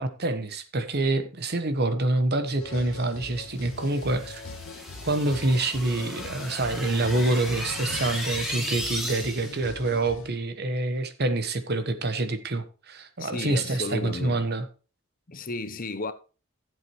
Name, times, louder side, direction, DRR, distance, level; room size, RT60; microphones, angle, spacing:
voice 1, 0.0-4.4 5.0-14.7, right 2 dB, 50° right, 1.3 m, -26 dB
sound 1, 2.6-10.3, left 3 dB, 75° left, 1.3 m, -41 dB
sound 2, 3.7-9.7, equal, ahead, 2.1 m, -36 dB
voice 2, 13.2-14.5 15.3-16.1, left 2 dB, 40° left, 0.9 m, -33 dB
14.5 x 7.7 x 3.2 m
head